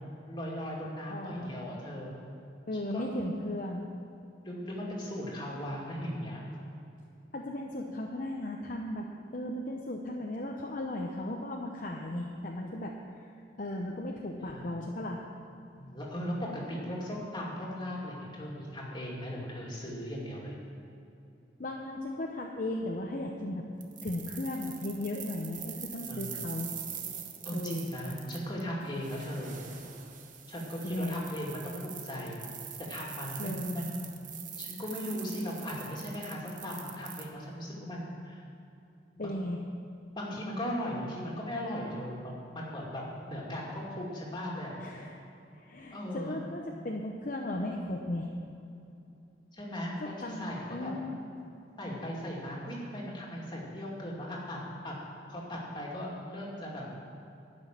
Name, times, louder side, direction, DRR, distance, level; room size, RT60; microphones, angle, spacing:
voice 1, 0.3-2.1 2.9-3.3 4.4-6.4 14.4-14.7 15.7-20.6 26.1-26.5 27.4-29.6 30.5-32.5 32.9-34.0 34.6-38.4 39.1-39.3 40.1-44.7 45.9-46.4 49.5-50.9 51.8-55.0 55.3-56.9, equal, 25° left, -4 dB, 2.4 m, -38 dB
voice 2, 1.1-1.5 2.7-3.9 7.3-9.1 9.3-12.9 13.2-13.3 13.6-15.2 21.6-23.7 24.0-26.7 27.1-27.2 27.5-27.9 30.8-31.2 33.4-33.8 39.2-39.6 44.8-45.2 45.5-48.3 50.0-51.2, left 1 dB, 45° left, 0 dB, 0.8 m, -36 dB
sound 1, 23.8-37.2, right 8 dB, 45° right, 1.0 m, -44 dB
11.5 x 6.2 x 9.0 m, 2.7 s
head